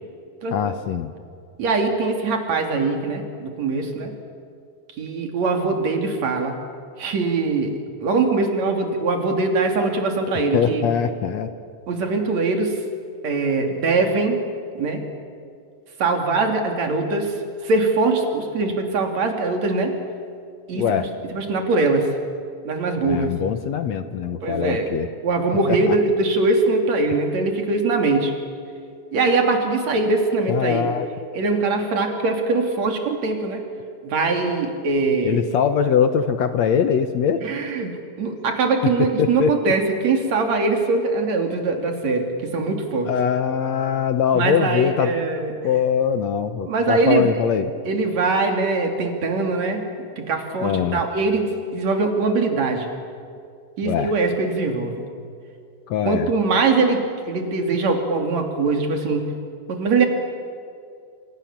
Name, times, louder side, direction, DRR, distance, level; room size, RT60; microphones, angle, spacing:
voice 1, 0.5-1.1 10.5-11.5 20.7-21.1 23.0-25.1 25.7-26.0 30.5-31.1 35.2-37.5 38.8-39.5 43.1-45.1 45.6-47.7 50.6-51.0 53.8-54.1 55.9-56.3, left 7 dB, 65° left, 9 dB, 2.0 m, -22 dB
voice 2, 1.6-4.1 5.0-6.6 7.0-10.9 11.9-12.8 13.2-14.4 14.7-15.0 16.0-20.0 20.7-22.1 22.6-23.3 24.4-24.9 25.2-28.3 29.1-30.9 31.3-33.6 34.0-35.4 37.4-43.1 44.3-45.5 46.7-47.3 47.9-49.8 50.2-52.9 53.8-55.1 56.0-59.3 59.7-60.1, right 3 dB, 55° right, 3 dB, 4.0 m, -22 dB
27.5 x 27.5 x 7.4 m, 2.4 s
omnidirectional pair, 3.8 m